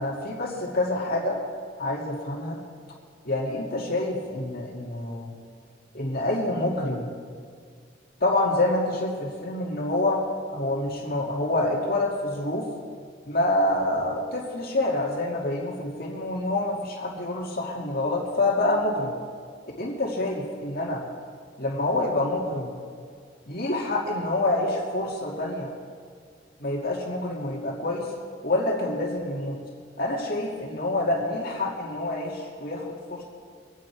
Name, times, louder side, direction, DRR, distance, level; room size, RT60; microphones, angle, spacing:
voice 1, 0.0-1.4 1.8-2.6 3.3-5.3 5.9-7.1 8.2-10.2 10.5-12.7 13.3-19.1 19.8-21.0 21.6-22.7 23.5-25.7 26.6-28.1 28.4-29.6 30.0-33.2, left 2 dB, 50° left, -2 dB, 2.3 m, -27 dB
24.5 x 9.4 x 4.7 m, 2.1 s
head